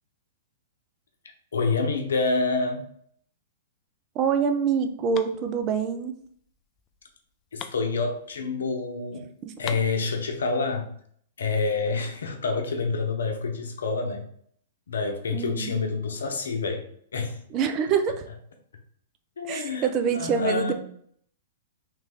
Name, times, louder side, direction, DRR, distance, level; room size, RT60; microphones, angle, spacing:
voice 1, 1.5-2.9 7.5-9.2 9.6-10.9 11.4-14.2 14.9-16.9 17.1-17.4 19.4-19.9 20.1-20.7, left 4 dB, 75° left, 4 dB, 0.7 m, -27 dB
voice 2, 4.1-6.2 15.3-15.7 17.5-18.3 19.5-20.7, right 6 dB, 35° right, 7 dB, 0.5 m, -25 dB
sound 1, 4.2-8.7 9.0-9.1 9.3-10.6, left 9 dB, 30° left, 0.3 m, -44 dB
3.3 x 3.2 x 3.4 m, 0.64 s
hypercardioid pair, 110°, 0 cm